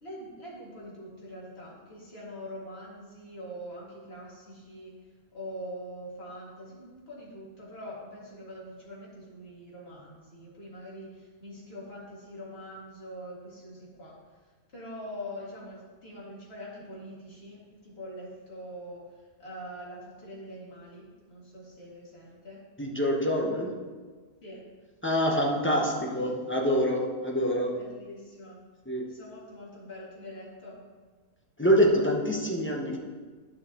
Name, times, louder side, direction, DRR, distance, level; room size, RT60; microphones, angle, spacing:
voice 1, 0.0-4.9 5.3-14.2 14.7-19.0 19.4-22.6 24.4-24.6 27.7-28.6 29.1-30.8, equal, 40° left, -6 dB, 2.4 m, -43 dB
voice 2, 22.8-23.9 25.0-27.9 28.9-29.1 31.6-33.0, equal, 10° left, -2 dB, 0.6 m, -26 dB
11.5 x 6.0 x 2.9 m, 1.4 s
omnidirectional pair, 1.6 m